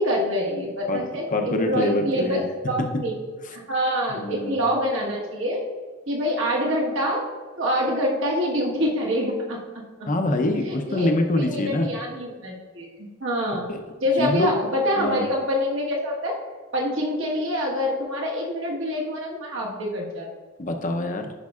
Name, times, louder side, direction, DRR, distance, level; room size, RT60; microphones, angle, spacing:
voice 1, 0.0-2.4 2.7-3.1 3.5-5.6 6.1-7.2 7.6-9.6 10.6-11.1 11.4-13.7 14.0-16.3 16.7-20.3, equal, 65° right, -2 dB, 1.4 m, -26 dB
voice 2, 1.3-2.4 3.5-3.6 4.1-4.6 10.1-11.9 13.7-13.8 14.2-14.5 15.0-15.3 20.6-21.3, left 1 dB, 40° left, 4 dB, 0.6 m, -25 dB
10.5 x 5.3 x 2.4 m, 1.4 s
head